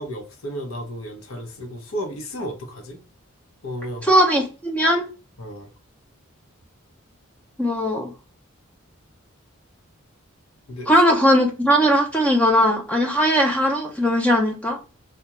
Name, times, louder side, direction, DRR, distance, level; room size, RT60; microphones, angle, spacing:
voice 1, 0.0-3.0 3.6-4.1 5.4-5.7 10.7-10.9, equal, 80° left, 0.7 m, -33 dB
voice 2, 4.1-5.1 7.6-8.1 10.9-14.8, equal, 5° left, 0.4 m, -19 dB
2.4 x 2.1 x 2.8 m
head